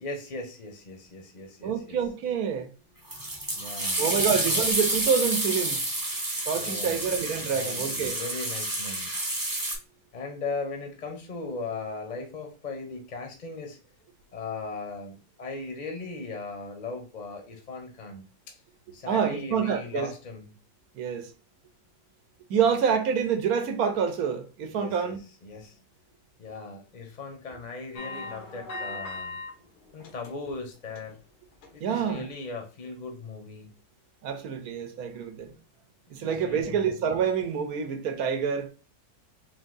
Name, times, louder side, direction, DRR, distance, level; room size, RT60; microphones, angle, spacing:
voice 1, 0.0-2.0 3.5-4.6 6.5-7.0 7.4-9.1 10.1-13.8 14.3-18.6 18.9-20.6 24.7-25.2 25.4-25.8 26.4-29.4 29.9-31.2 31.7-33.8 36.2-36.9, left 3 dB, 40° left, 0.6 m, -38 dB
voice 2, 1.6-2.7 4.0-5.8 6.5-8.1 19.1-20.1 21.0-21.3 22.5-25.2 31.8-32.3 34.2-35.5 36.1-38.7, right 7 dB, 75° right, 1.2 m, -27 dB
sound 1, 3.1-9.8, right 1 dB, 15° right, 0.7 m, -29 dB
sound 2, 28.0-29.5 29.9-30.5 30.9-31.1 31.6-31.7, left 2 dB, 90° left, 1.4 m, -38 dB
3.9 x 2.6 x 3.8 m
omnidirectional pair, 1.6 m